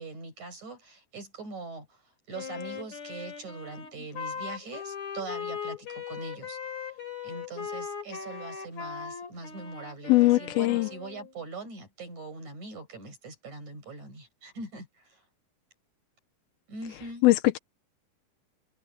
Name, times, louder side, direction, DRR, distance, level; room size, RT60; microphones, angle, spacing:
voice 1, 0.0-2.0 2.3-6.6 7.2-15.2 16.7-17.2, right 3 dB, 50° right, 8.7 m, -42 dB
Wind instrument woodwind instrument, 2.3-11.3, left 7 dB, 50° left, 4.8 m, -39 dB
voice 2, 10.1-10.9 17.2-17.6, left 19 dB, 90° left, 2.8 m, -21 dB
omnidirectional pair, 4.3 m